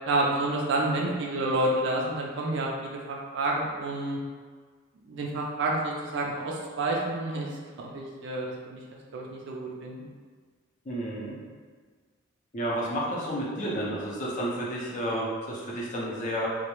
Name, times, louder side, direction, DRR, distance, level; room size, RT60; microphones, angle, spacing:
voice 1, 0.1-4.2 5.0-8.8 9.1-10.1, right 2 dB, 55° right, -2 dB, 0.3 m, -29 dB
voice 2, 10.9-11.4 12.5-16.5, right 1 dB, 35° left, -4 dB, 0.5 m, -31 dB
2.2 x 2.0 x 2.9 m, 1.5 s
head